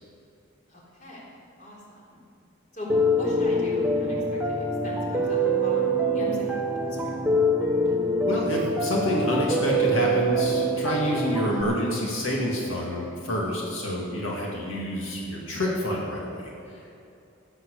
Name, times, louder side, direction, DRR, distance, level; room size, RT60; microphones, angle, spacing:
voice 1, 0.7-2.2 2.7-7.2, equal, 40° left, -5 dB, 3.8 m, -40 dB
Piano, 2.9-11.6, right 1 dB, 5° right, 1.0 m, -25 dB
voice 2, 8.3-16.8, equal, 90° left, -3 dB, 2.2 m, -28 dB
16.5 x 7.8 x 6.7 m, 2.5 s
head